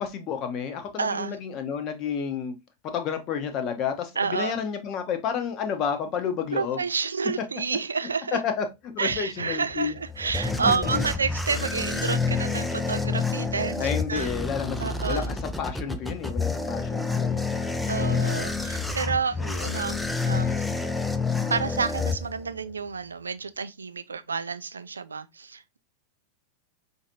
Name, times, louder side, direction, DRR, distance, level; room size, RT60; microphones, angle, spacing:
voice 1, 0.0-2.5 2.8-6.8 8.3-8.7 8.9-9.9 10.6-11.0 13.8-17.4 18.1-18.5 19.4-19.8, left 7 dB, 35° left, 0.8 m, -30 dB
voice 2, 1.0-1.4 4.2-4.5 6.5-8.4 9.0-14.3 14.8-15.4 17.9-20.6 21.5-25.8, right 5 dB, 75° right, 0.3 m, -29 dB
sound 1, 9.7-22.7, left 4 dB, 5° left, 0.4 m, -28 dB
5.0 x 2.6 x 2.7 m
figure-of-eight pair, 90°, 0 cm